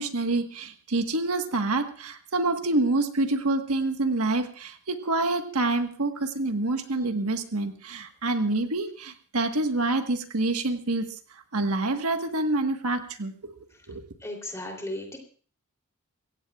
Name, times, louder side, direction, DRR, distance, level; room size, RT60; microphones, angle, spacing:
voice 1, 0.0-11.2 11.5-13.5 13.9-14.0, right 2 dB, 85° right, 6 dB, 1.4 m, -27 dB
voice 2, 14.2-15.2, left 1 dB, 15° left, 1 dB, 3.2 m, -35 dB
23.5 x 16.5 x 2.4 m, 0.42 s
head